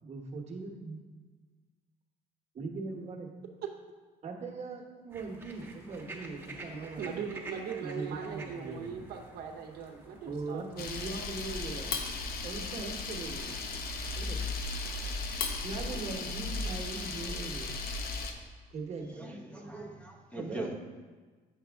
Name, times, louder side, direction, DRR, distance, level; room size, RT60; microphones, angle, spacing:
voice 1, 0.0-1.0 2.5-3.3 4.2-7.3 7.8-9.0 10.2-12.1 12.4-14.5 15.6-17.9 18.7-19.2 20.3-20.7, right 3 dB, 40° right, 1 dB, 1.1 m, -40 dB
sound 1, 5.1-18.2, right 2 dB, 10° right, 1.2 m, -51 dB
voice 2, 7.0-10.6, right 7 dB, 65° right, 3 dB, 0.8 m, -39 dB
Camera, 10.8-18.3, left 3 dB, 65° left, 0.8 m, -36 dB
voice 3, 19.2-20.7, right 1 dB, 5° left, 1 dB, 0.9 m, -41 dB
7.6 x 6.1 x 3.5 m, 1.4 s
cardioid pair, 110°, 17 cm